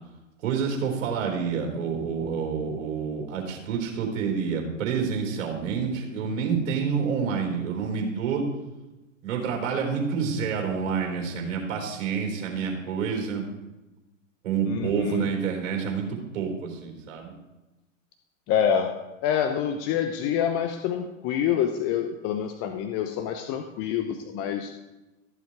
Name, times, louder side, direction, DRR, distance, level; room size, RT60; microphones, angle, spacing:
voice 1, 0.4-8.5 9.2-13.5 14.4-17.3, right 6 dB, 65° right, 1 dB, 4.2 m, -28 dB
voice 2, 14.6-15.3 18.5-24.7, left 8 dB, 35° left, 6 dB, 0.9 m, -27 dB
14.5 x 7.3 x 4.7 m, 1.0 s
hypercardioid pair, 105°, 39 cm